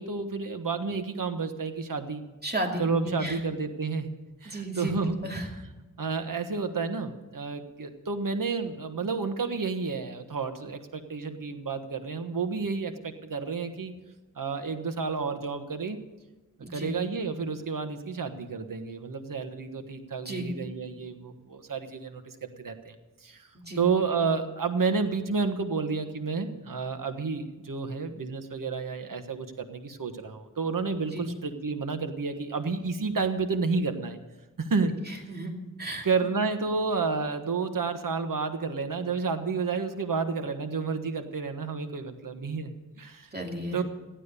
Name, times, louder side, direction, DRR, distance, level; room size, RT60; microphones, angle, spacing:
voice 1, 0.0-2.2 2.8-4.1 4.4-5.5 6.0-13.9 14.3-16.0 16.7-22.9 23.2-23.5 23.8-34.2 34.6-35.0 36.0-43.3 43.7-43.8, right 4 dB, 80° right, 8 dB, 1.4 m, -30 dB
voice 2, 2.4-3.4 4.4-5.5 16.6-17.0 20.2-20.5 23.7-23.8 31.1-31.3 35.1-35.5 35.8-36.1 43.3-43.8, right 1 dB, 30° right, 1 dB, 2.7 m, -34 dB
15.0 x 11.5 x 6.8 m, 1.2 s
wide cardioid pair, 70°, 32 cm